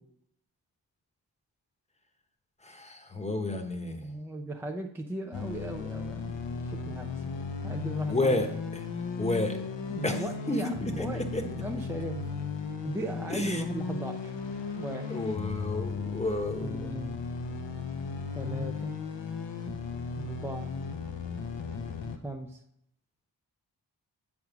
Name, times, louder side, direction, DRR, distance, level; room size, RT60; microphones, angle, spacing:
voice 1, 2.6-4.0 8.1-8.5 8.7-8.8 9.2-9.6 10.0-10.2 10.5-11.5 13.3-13.6 15.1-16.9, left 2 dB, 15° left, 5 dB, 1.0 m, -31 dB
voice 2, 4.0-6.4 6.6-7.1 7.6-8.4 9.9-12.2 12.8-14.3 14.8-15.2 16.6-17.2 18.3-18.9 20.1-20.7 22.2-22.6, right 1 dB, 5° right, 3 dB, 0.5 m, -37 dB
sound 1, 5.3-22.2, left 5 dB, 75° left, 0.8 m, -36 dB
7.6 x 3.6 x 5.8 m, 0.74 s
wide cardioid pair, 65°, 44 cm